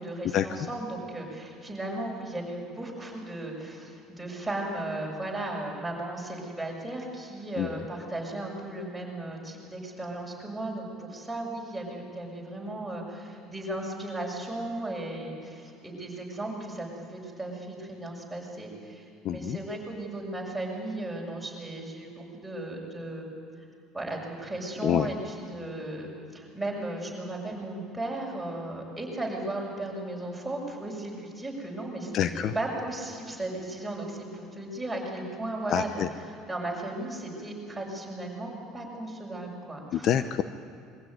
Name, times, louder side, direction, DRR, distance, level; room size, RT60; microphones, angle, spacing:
voice 1, 0.0-23.3 23.9-40.1, right 1 dB, 5° right, -2 dB, 6.7 m, -36 dB
voice 2, 19.2-19.6 24.8-25.1 32.1-32.5 35.7-36.1 39.9-40.4, left 10 dB, 55° left, 11 dB, 0.8 m, -26 dB
22.5 x 15.5 x 9.6 m, 2.6 s
supercardioid pair, 95°, 0 cm